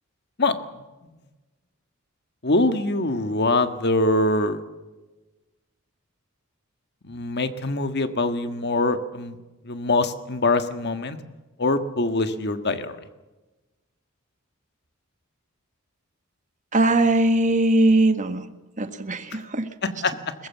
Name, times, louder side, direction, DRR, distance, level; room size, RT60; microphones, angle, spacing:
voice 1, 2.4-4.6 7.0-9.4 9.6-11.2 11.6-13.1 19.3-19.4 19.8-20.3, left 2 dB, 50° left, 9 dB, 1.7 m, -23 dB
voice 2, 16.7-18.5 18.8-19.7, right 2 dB, 35° right, 9 dB, 1.7 m, -20 dB
22.5 x 20.5 x 7.2 m, 1.1 s
head